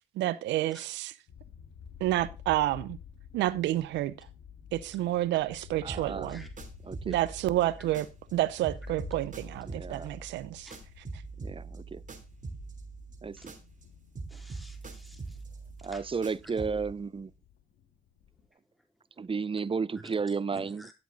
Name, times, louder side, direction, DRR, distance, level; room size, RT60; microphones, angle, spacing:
voice 1, 0.2-1.1 2.0-3.0 3.3-4.1 4.7-6.4 7.1-8.1 8.3-10.7, right 15 dB, 90° right, 0.6 m, -29 dB
sound 1, 1.3-18.5, left 8 dB, 85° left, 1.7 m, -51 dB
voice 2, 5.8-6.4 6.8-7.2 9.5-10.2 11.4-12.0 13.2-13.5 15.8-17.3 19.2-20.8, right 5 dB, 30° right, 0.6 m, -33 dB
sound 2, 5.9-8.4 8.6-13.9 14.2-17.0, right 4 dB, 45° right, 3.2 m, -44 dB
voice 3, 14.3-15.4 15.9-16.0 18.8-18.9 20.0-20.1 20.5-20.9, equal, ahead, 4.1 m, -51 dB
11.5 x 8.1 x 3.8 m
supercardioid pair, 45°, 18 cm